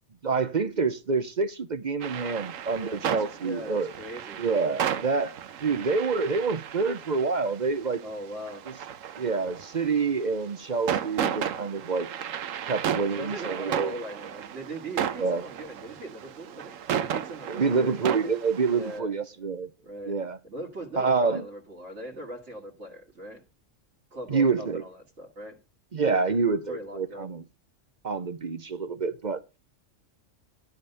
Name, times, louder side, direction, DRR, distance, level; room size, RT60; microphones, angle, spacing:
voice 1, 0.2-3.9 4.4-5.3 5.6-8.0 9.2-12.1 12.7-13.9 15.2-15.4 17.5-19.7 20.1-20.4 21.0-21.4 24.3-24.8 25.9-27.4 28.0-29.4, right 4 dB, 40° right, 0.8 m, -27 dB
sound 1, 2.0-19.0, right 9 dB, 85° right, 1.2 m, -34 dB
voice 2, 2.7-4.8 8.0-8.7 13.0-18.4 18.7-19.1 19.8-20.2 20.4-23.4 24.1-25.6 26.2-27.3, right 1 dB, 65° right, 2.3 m, -40 dB
12.0 x 5.3 x 6.5 m
omnidirectional pair, 1.3 m